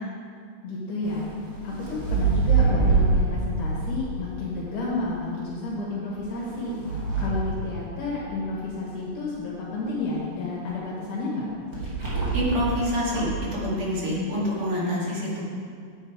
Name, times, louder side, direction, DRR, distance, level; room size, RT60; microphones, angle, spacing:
voice 1, 0.6-1.2 1.6-6.7 7.2-11.4, left 3 dB, 70° left, -6 dB, 2.9 m, -31 dB
sound 1, 1.0-5.1 6.1-8.4 11.7-12.6 13.0-13.5, right 4 dB, 30° right, 2.0 m, -26 dB
voice 2, 12.3-15.4, equal, 45° right, -5 dB, 2.5 m, -26 dB
8.7 x 8.7 x 4.6 m, 2.2 s
omnidirectional pair, 3.8 m